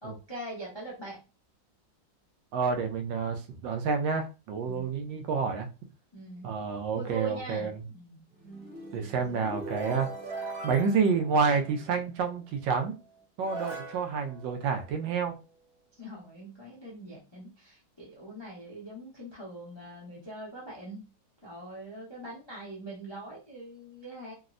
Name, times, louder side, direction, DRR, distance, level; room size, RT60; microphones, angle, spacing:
voice 1, 0.0-1.2 4.6-4.9 6.1-6.5 6.9-8.2 16.0-21.1 21.4-24.3, right 2 dB, 35° left, -5 dB, 0.4 m, -42 dB
voice 2, 2.5-5.7 6.4-7.7 8.9-12.9 13.4-15.4, right 5 dB, 85° right, 6 dB, 1.3 m, -29 dB
sound 1, 8.3-12.1 12.9-13.0 13.4-15.3, right 2 dB, 45° right, 1.0 m, -41 dB
3.5 x 2.0 x 2.4 m, 0.30 s
omnidirectional pair, 2.0 m